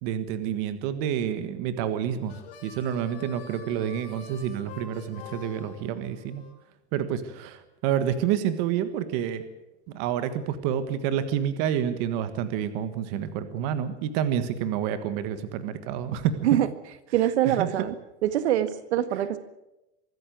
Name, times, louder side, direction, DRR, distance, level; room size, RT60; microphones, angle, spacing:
voice 1, 0.0-2.3 2.6-6.4 6.9-9.4 9.9-16.3 17.4-17.7, right 9 dB, 40° right, 11 dB, 1.5 m, -28 dB
Harmonica, 2.2-6.5, left 7 dB, 65° left, 5.2 m, -46 dB
voice 2, 17.1-18.0 18.2-19.4, right 12 dB, 80° right, 11 dB, 1.8 m, -24 dB
24.0 x 13.5 x 9.3 m, 0.93 s
supercardioid pair, 175°, 33 cm